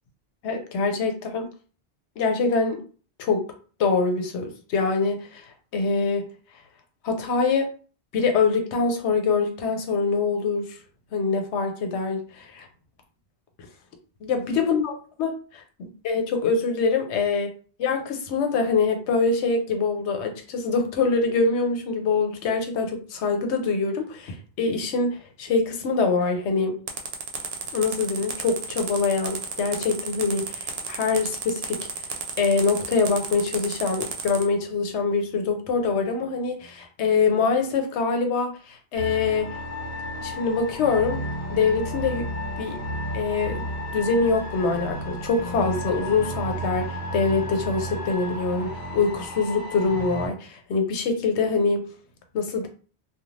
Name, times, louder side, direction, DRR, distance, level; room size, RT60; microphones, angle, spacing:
voice 1, 0.4-1.5 2.2-2.8 3.2-3.4 3.8-5.5 5.7-6.3 7.0-7.7 8.1-10.8 11.1-12.7 14.2-14.9 15.2-17.5 17.8-26.8 27.7-31.9 32.4-39.5 40.2-41.2 41.5-42.3 42.6-42.8 43.1-43.7 43.9-51.9 52.3-52.7, left 4 dB, 85° left, 5 dB, 0.9 m, -24 dB
sound 1, 26.9-34.4, right 6 dB, 70° right, 0.8 m, -32 dB
sound 2, 38.9-50.3, equal, 45° left, 1.2 m, -32 dB
2.5 x 2.3 x 3.1 m, 0.40 s
omnidirectional pair, 1.1 m